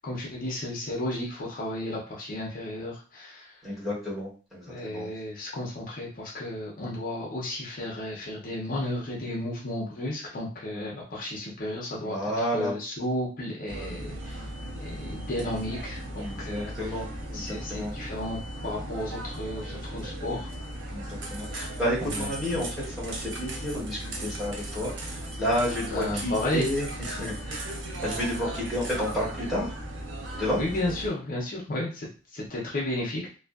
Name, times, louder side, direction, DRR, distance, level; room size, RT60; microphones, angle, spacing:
voice 1, 0.0-3.6 4.7-14.5 14.8-16.9 17.3-20.5 22.0-22.3 25.9-26.7 30.6-33.2, left 1 dB, 45° left, -3 dB, 0.6 m, -33 dB
voice 2, 3.6-5.1 12.0-12.7 16.0-17.9 20.9-27.7 28.0-29.7 30.4-30.6, equal, ahead, -8 dB, 1.1 m, -31 dB
sound 1, 13.7-31.1, right 1 dB, 80° right, 0.6 m, -37 dB
2.6 x 2.3 x 2.3 m, 0.36 s
head